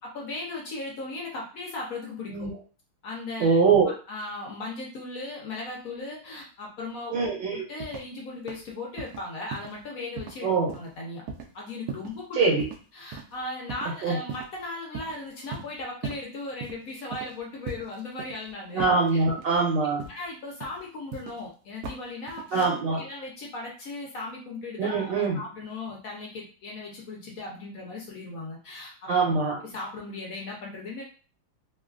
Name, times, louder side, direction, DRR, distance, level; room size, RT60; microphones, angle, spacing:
voice 1, 0.0-2.5 3.0-3.6 4.1-7.1 7.5-11.2 11.5-12.4 12.9-18.9 20.1-29.1 29.6-31.0, left 2 dB, 65° left, -2 dB, 0.8 m, -37 dB
voice 2, 3.4-3.9 7.1-7.7 10.4-10.7 12.4-12.6 14.0-14.2 18.7-20.0 22.5-23.0 24.8-25.4 29.1-29.6, right 4 dB, 70° right, -2 dB, 1.2 m, -23 dB
sound 1, 7.8-8.2 8.5-8.7 9.0-9.2 9.5-9.8 10.2-10.4 10.7-11.0 11.3-11.5 11.9-12.2 12.6-12.8 13.1-13.3 13.7-13.9 14.3-14.6 14.9-15.1 15.5-16.2 16.6-16.8 17.1-17.4 17.7-18.5 18.8-19.6 20.0-20.3 20.6-21.4 21.8-22.0 22.3-22.7, right 5 dB, 90° right, 0.8 m, -38 dB
3.1 x 2.3 x 2.4 m, 0.37 s
omnidirectional pair, 2.2 m